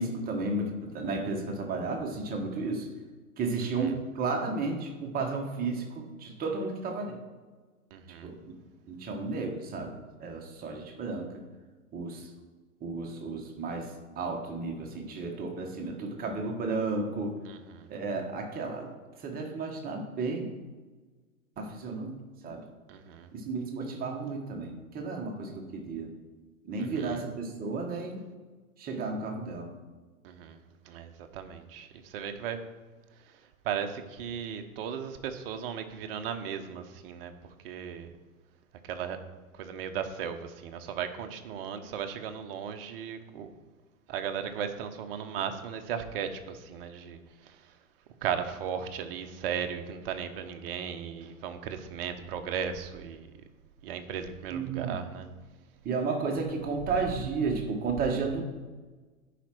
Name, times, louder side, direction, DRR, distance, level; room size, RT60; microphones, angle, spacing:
voice 1, 0.0-2.9 3.4-7.2 8.2-8.4 8.9-11.3 11.9-12.3 12.8-17.4 17.9-18.9 19.2-20.5 21.6-22.1 22.4-22.6 23.3-26.1 26.6-28.2 28.8-29.7 54.5-55.0 55.8-58.4, right 3 dB, 20° right, 2 dB, 1.3 m, -33 dB
voice 2, 3.6-4.0 7.9-8.3 17.4-17.9 22.9-23.3 26.8-27.2 30.2-32.7 33.2-37.3 37.6-38.1 38.8-39.2 39.5-43.5 44.1-47.8 48.2-53.3 53.8-55.3, right 8 dB, 40° right, 7 dB, 0.9 m, -36 dB
10.0 x 5.1 x 4.5 m, 1.3 s
figure-of-eight pair, 100°, 43 cm